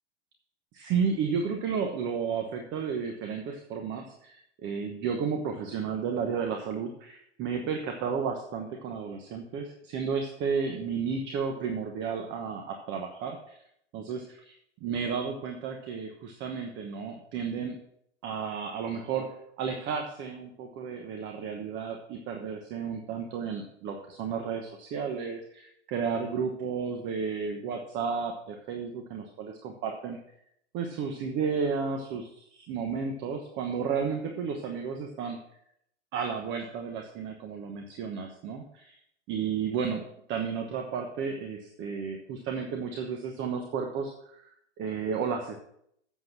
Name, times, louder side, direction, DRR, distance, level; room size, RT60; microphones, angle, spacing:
voice 1, 0.7-13.6 13.9-14.6 14.8-17.8 18.2-30.2 30.7-35.4 36.1-39.0 39.3-45.6, right 6 dB, 35° right, 4 dB, 1.2 m, -33 dB
7.8 x 7.8 x 6.0 m, 0.72 s
hypercardioid pair, 135°, 35 cm